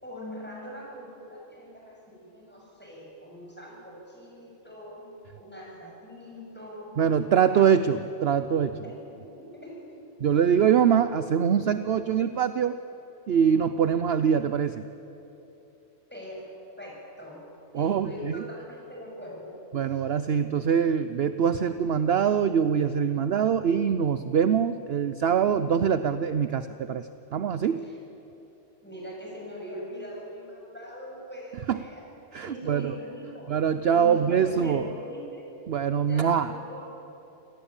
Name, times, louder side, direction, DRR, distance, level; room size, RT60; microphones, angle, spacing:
voice 1, 0.0-5.1 5.4-7.0 7.4-7.7 8.8-10.6 16.1-16.5 16.8-17.4 17.7-20.0 27.7-28.0 28.8-32.1 32.4-33.5 33.9-35.4 36.1-36.8, equal, 10° left, -3 dB, 7.2 m, -42 dB
voice 2, 7.0-8.8 10.2-12.8 13.3-14.8 17.7-18.4 19.7-27.9 31.7-31.8 32.3-32.9 33.5-34.8 35.7-36.5, right 7 dB, 60° right, 12 dB, 0.9 m, -24 dB
27.0 x 18.5 x 8.9 m, 2.9 s
omnidirectional pair, 1.3 m